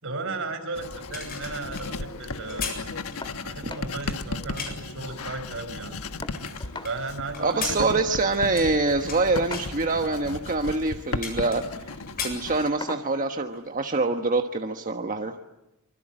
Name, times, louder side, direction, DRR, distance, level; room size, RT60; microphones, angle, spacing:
voice 1, 0.0-2.7 3.4-5.9 6.8-7.9, right 3 dB, 65° right, 7 dB, 4.7 m, -35 dB
Writing, 0.8-12.7, left 3 dB, 75° left, 1.3 m, -36 dB
sound 1, 1.1-4.9 5.5-6.9 7.3-9.2 9.5-9.8 10.4-10.5 10.8-11.8 12.1-13.1 13.4-13.6, left 6 dB, 45° left, 7.8 m, -37 dB
sound 2, 3.2-3.4 3.7-3.9 4.3-4.4 4.7-5.3 6.2-7.0 8.2-8.4 9.4-10.0 11.1-11.4 11.8-12.0 12.8-13.1 14.4-14.5 15.0-15.1, left 3 dB, 20° left, 1.9 m, -40 dB
voice 2, 7.4-12.0 12.2-15.4, right 3 dB, 40° right, 5 dB, 1.3 m, -25 dB
25.5 x 25.0 x 9.0 m, 0.91 s
head